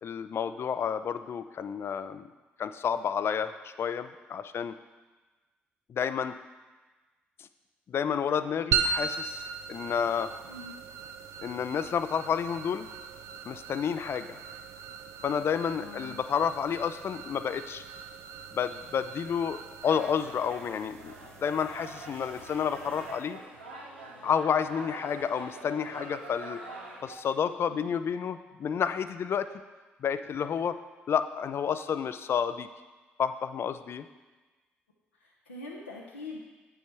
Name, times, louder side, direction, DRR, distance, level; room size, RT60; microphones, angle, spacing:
voice 1, 0.0-2.3 2.6-4.7 5.9-6.3 7.4-7.5 7.9-10.3 11.4-12.9 13.4-14.4 15.2-17.8 18.5-23.4 24.2-26.6 27.0-29.5 30.0-30.8 31.1-32.7 33.2-34.1, left 7 dB, 45° left, 12 dB, 0.4 m, -30 dB
sound 1, 8.7-23.4, right 6 dB, 55° right, 0.5 m, -38 dB
voice 2, 15.8-16.2 27.7-27.8 35.2-36.4, left 2 dB, 90° left, -4 dB, 0.6 m, -43 dB
sound 2, 19.8-27.2, right 2 dB, 90° right, 0.8 m, -45 dB
8.2 x 5.6 x 4.5 m, 1.3 s
figure-of-eight pair, 45°, 6 cm